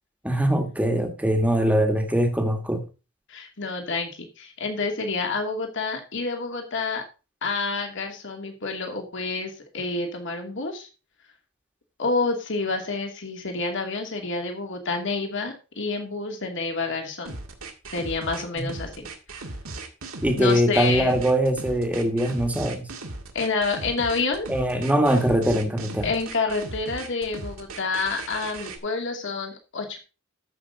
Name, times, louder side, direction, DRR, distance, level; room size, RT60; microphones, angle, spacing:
voice 1, 0.2-2.8 18.6-18.7 20.2-22.9 24.5-26.1, equal, 5° right, 1.5 m, -22 dB
voice 2, 3.3-7.0 7.4-10.9 12.0-17.3 17.9-19.1 20.3-21.2 23.3-24.5 26.0-30.0, left 3 dB, 60° left, 2.4 m, -28 dB
sound 1, 17.3-28.8, right 2 dB, 80° right, 2.0 m, -37 dB
13.5 x 6.0 x 3.9 m
head